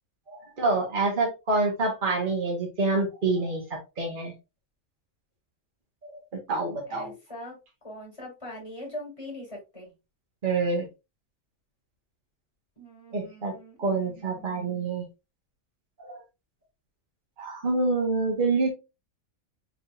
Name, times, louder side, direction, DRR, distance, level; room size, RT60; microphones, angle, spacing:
voice 1, 0.3-4.3 6.1-6.2 6.5-7.1 10.4-10.9 13.1-13.5 13.8-15.0 16.0-16.2 17.4-18.7, right 3 dB, 40° right, -1 dB, 1.5 m, -27 dB
voice 2, 6.9-7.6 7.8-9.9 12.8-14.9, left 1 dB, 25° left, -2 dB, 2.4 m, -42 dB
4.8 x 3.7 x 2.5 m, 0.26 s
omnidirectional pair, 1.4 m